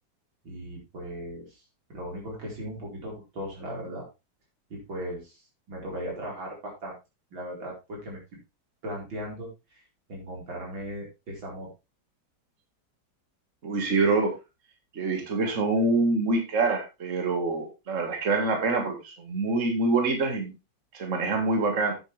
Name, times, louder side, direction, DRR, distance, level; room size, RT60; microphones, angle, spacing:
voice 1, 0.4-1.6 1.9-4.1 4.7-5.4 5.7-7.0 7.3-8.2 8.8-9.8 10.1-11.7, equal, 90° right, -2 dB, 5.3 m, -37 dB
voice 2, 13.6-14.3 14.9-20.5 20.9-21.9, right 3 dB, 40° right, 3 dB, 2.2 m, -25 dB
9.8 x 8.8 x 3.4 m, 0.26 s
omnidirectional pair, 2.1 m